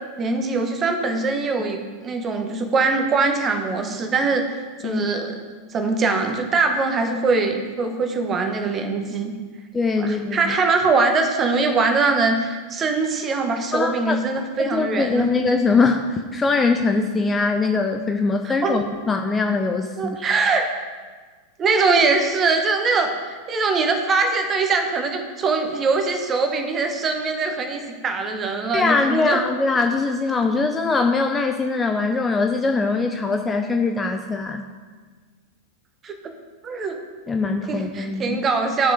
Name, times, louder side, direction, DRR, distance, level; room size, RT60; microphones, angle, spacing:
voice 1, 0.2-4.4 4.8-5.3 5.7-9.3 10.0-15.3 18.4-18.9 20.0-20.6 21.6-29.4 36.0-36.3 36.6-37.0 37.7-38.9, right 4 dB, 25° right, 5 dB, 1.4 m, -22 dB
voice 2, 9.7-10.4 13.7-14.2 14.6-20.2 28.7-34.6 37.3-38.4, left 3 dB, 15° left, 5 dB, 0.6 m, -22 dB
10.5 x 6.8 x 4.9 m, 1.5 s
figure-of-eight pair, 90°, 0 cm